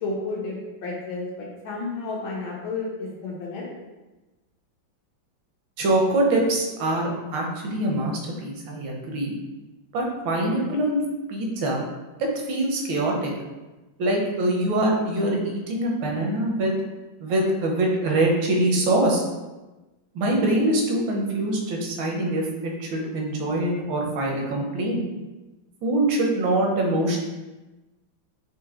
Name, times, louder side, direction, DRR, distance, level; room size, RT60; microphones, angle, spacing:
voice 1, 0.0-3.7, left 3 dB, 90° left, -3 dB, 1.7 m, -31 dB
voice 2, 5.8-9.3 9.9-11.0 11.3-11.8 12.2-13.3 14.0-16.8 17.2-19.2 20.1-25.0 25.8-27.2, right 1 dB, 75° right, 0 dB, 1.6 m, -24 dB
5.0 x 2.9 x 3.7 m, 1.1 s
omnidirectional pair, 2.2 m